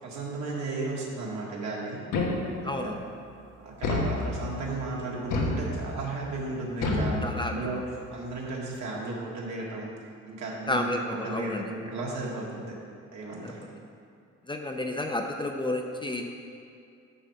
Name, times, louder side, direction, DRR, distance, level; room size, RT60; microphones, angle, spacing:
voice 1, 0.0-2.0 2.6-3.0 3.6-9.9 10.3-12.7 13.1-13.6, right 2 dB, 65° right, -3 dB, 1.9 m, -34 dB
sound 1, 2.1-2.8 3.8-4.7 5.3-6.1 6.8-7.8, left 2 dB, 85° left, 1.3 m, -29 dB
voice 2, 2.6-3.0 7.2-7.5 10.7-11.6 14.5-16.3, left 1 dB, 15° left, 2 dB, 0.6 m, -31 dB
9.8 x 3.4 x 6.5 m, 2.4 s
cardioid pair, 90°, 30 cm